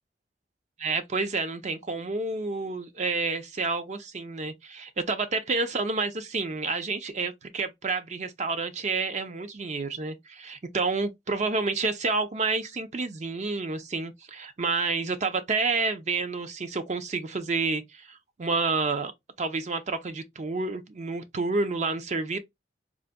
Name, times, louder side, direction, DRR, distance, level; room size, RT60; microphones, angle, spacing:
voice 1, 0.8-19.1 19.4-22.4, right 3 dB, 40° right, 0.5 m, -29 dB
3.8 x 2.5 x 2.2 m
head